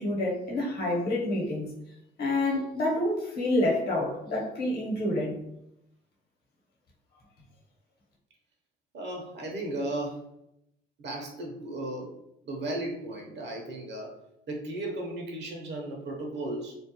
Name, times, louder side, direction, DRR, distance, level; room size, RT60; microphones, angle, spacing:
voice 1, 0.0-1.7 2.2-5.4, left 1 dB, 55° left, -2 dB, 0.9 m, -28 dB
voice 2, 8.9-10.2 11.0-12.1 12.4-14.1 14.5-16.8, right 1 dB, 60° right, 0 dB, 0.6 m, -35 dB
2.3 x 2.1 x 2.8 m, 0.81 s
cardioid pair, 90°, 20 cm